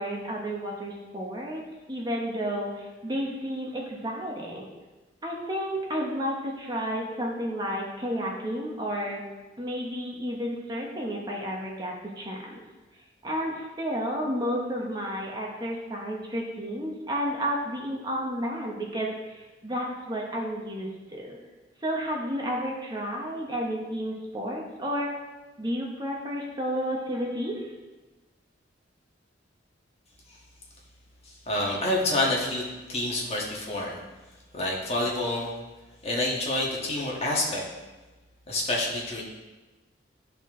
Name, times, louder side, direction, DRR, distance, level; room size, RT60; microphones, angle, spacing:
voice 1, 0.0-1.6 1.9-4.7 5.2-9.2 9.6-12.6 13.2-21.4 21.8-25.1 25.6-27.7, equal, 20° right, -2 dB, 1.0 m, -31 dB
voice 2, 31.4-34.0 34.5-35.5 36.0-37.6 38.5-39.2, left 1 dB, 35° left, -3 dB, 1.6 m, -28 dB
12.5 x 4.3 x 3.7 m, 1.2 s
head